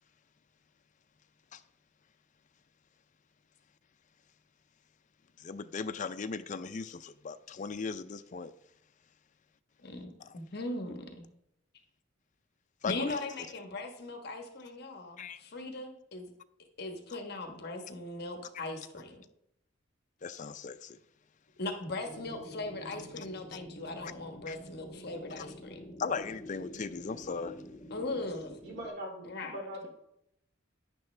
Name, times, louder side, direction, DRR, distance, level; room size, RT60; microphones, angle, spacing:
voice 1, 5.4-8.5 10.2-10.3 12.8-13.2 15.2-15.4 20.2-21.0 24.0-24.1 24.5-24.6 25.4-25.5 26.0-27.6, left 5 dB, 40° left, 0.4 m, -38 dB
voice 2, 9.8-11.3 12.8-16.3 16.8-19.2 21.6-25.9 27.9-28.6 29.2-29.9, left 2 dB, 55° left, 1.2 m, -39 dB
sound 1, 22.0-28.9, left 1 dB, 20° left, 1.7 m, -48 dB
voice 3, 28.6-29.9, equal, 55° right, 2.6 m, -41 dB
10.5 x 9.6 x 3.3 m
head